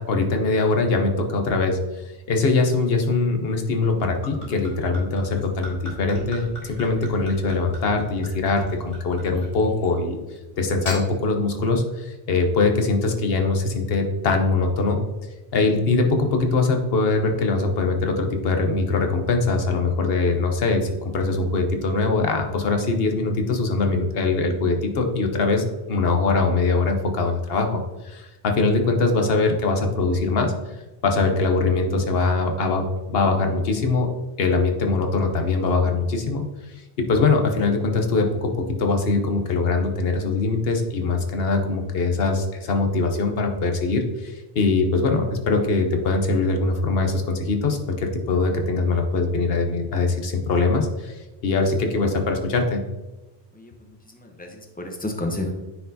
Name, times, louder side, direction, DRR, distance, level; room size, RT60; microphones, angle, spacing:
voice 1, 0.0-10.2 10.6-15.0 15.5-30.5 31.0-34.1 34.4-36.4 37.0-52.8, left 3 dB, 65° left, 4 dB, 1.1 m, -22 dB
Gurgling / Chink clink / Liquid, 3.8-10.0 10.6-11.0, equal, 30° left, 2.2 m, -39 dB
voice 2, 53.5-55.5, left 1 dB, 10° left, 2 dB, 0.7 m, -31 dB
9.5 x 4.5 x 2.7 m, 1.1 s
omnidirectional pair, 1.1 m